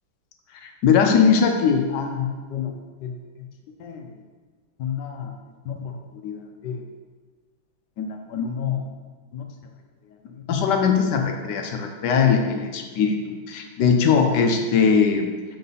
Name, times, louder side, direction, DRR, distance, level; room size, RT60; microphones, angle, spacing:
voice 1, 0.6-2.7 3.0-3.1 3.8-4.0 4.8-5.3 5.7-5.9 6.2-6.4 6.6-6.8 8.0-8.8 9.3-9.4 10.5-13.2 13.5-15.3, left 6 dB, 70° left, 4 dB, 1.1 m, -21 dB
5.4 x 4.6 x 4.0 m, 1.4 s
omnidirectional pair, 2.2 m